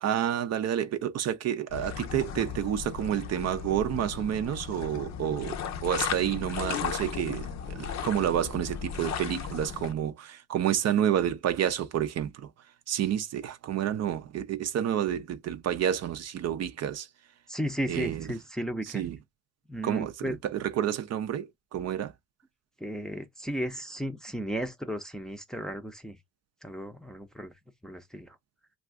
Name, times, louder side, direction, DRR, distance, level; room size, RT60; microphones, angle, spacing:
voice 1, 0.0-12.5 12.9-17.1 17.9-18.3 18.9-19.2 19.8-22.1, right 10 dB, 60° right, 0.5 m, -29 dB
sound 1, 1.7-9.9, left 8 dB, 65° left, 0.6 m, -36 dB
voice 2, 17.5-19.0 19.7-20.4 22.8-26.2 26.6-27.5 27.8-28.4, equal, ahead, 0.5 m, -34 dB
2.4 x 2.4 x 3.5 m
cardioid pair, 90°, 30 cm